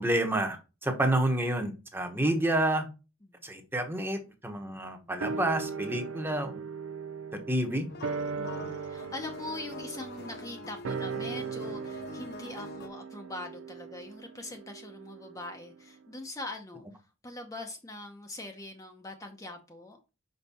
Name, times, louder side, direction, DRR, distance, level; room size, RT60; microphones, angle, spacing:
voice 1, 0.0-2.9 3.4-6.6 7.5-7.9, right 1 dB, 10° right, 1.0 m, -29 dB
voice 2, 4.8-5.1 8.4-16.8 17.2-20.0, left 2 dB, 15° left, 0.8 m, -42 dB
sound 1, 5.2-15.8 16.1-16.2, right 5 dB, 85° right, 0.5 m, -39 dB
sound 2, 7.9-12.9, left 4 dB, 55° left, 0.7 m, -45 dB
5.5 x 5.4 x 4.2 m
head